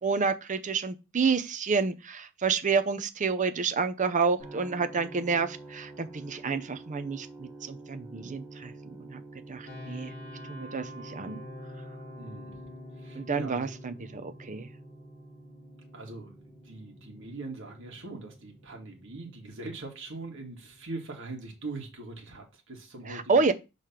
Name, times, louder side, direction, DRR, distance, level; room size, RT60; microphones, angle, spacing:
voice 1, 0.0-9.2 9.5-10.1 10.5-11.4 13.2-14.7 23.1-23.5, right 5 dB, 35° right, 0.6 m, -29 dB
sound 1, 4.4-20.3, right 2 dB, ahead, 2.1 m, -49 dB
sound 2, 9.6-22.5, left 2 dB, 35° left, 2.0 m, -49 dB
voice 2, 12.2-12.7 12.9-13.7 15.9-23.5, right 3 dB, 65° right, 1.7 m, -42 dB
6.6 x 3.3 x 5.8 m
head